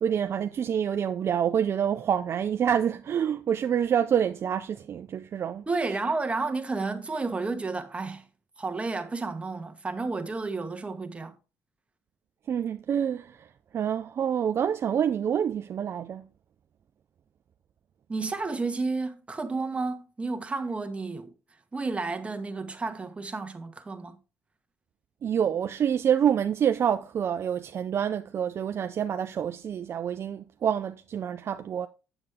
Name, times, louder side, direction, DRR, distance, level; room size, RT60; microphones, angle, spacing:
voice 1, 0.0-5.7 12.5-13.4 13.7-16.2 25.2-31.9, right 8 dB, 50° right, 0.5 m, -27 dB
voice 2, 5.7-8.2 8.6-11.3 18.1-21.3 21.7-24.2, right 3 dB, 20° right, 1.3 m, -31 dB
7.9 x 7.2 x 3.5 m
cardioid pair, 90°, 6 cm